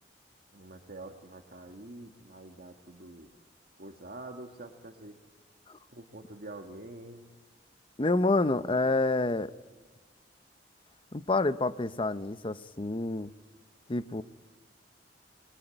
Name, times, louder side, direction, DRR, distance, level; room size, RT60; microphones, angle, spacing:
voice 1, 0.5-3.3 3.8-5.2 5.9-7.3, right 2 dB, 60° right, 3 dB, 1.7 m, -46 dB
voice 2, 8.0-9.5 11.1-13.3 13.9-14.2, left 2 dB, 30° left, 12 dB, 0.8 m, -28 dB
28.5 x 22.5 x 9.0 m, 1.3 s
head